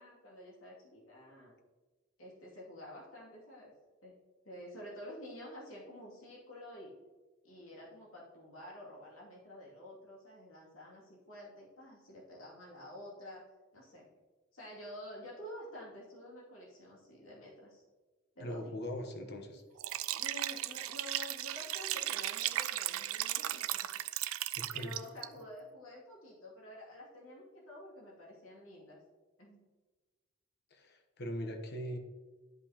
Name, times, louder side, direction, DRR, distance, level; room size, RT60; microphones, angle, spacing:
voice 1, 0.0-1.5 2.2-3.7 4.0-4.1 4.4-6.9 7.4-13.4 13.7-14.1 14.5-17.8 18.3-18.7 20.2-23.9 24.7-29.0 29.4-29.6, left 1 dB, 85° left, -4 dB, 2.5 m, -50 dB
voice 2, 18.4-19.6 24.5-24.9 30.7-32.0, equal, 55° left, 5 dB, 1.0 m, -40 dB
Liquid, 19.8-25.3, right 14 dB, 85° right, 0.4 m, -36 dB
12.0 x 5.2 x 2.9 m, 1.3 s
head